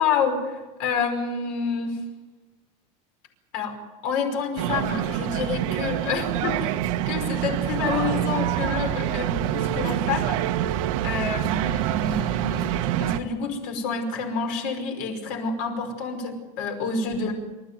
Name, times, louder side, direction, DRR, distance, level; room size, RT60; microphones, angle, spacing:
voice 1, 0.0-2.0 3.5-3.8 4.0-6.8 7.1-10.4 11.0-17.3, left 5 dB, 55° left, 5 dB, 5.4 m, -28 dB
sound 1, 4.6-13.2, right 12 dB, 70° right, 1.4 m, -26 dB
28.0 x 14.0 x 9.5 m, 1.2 s
cardioid pair, 170°, 18 cm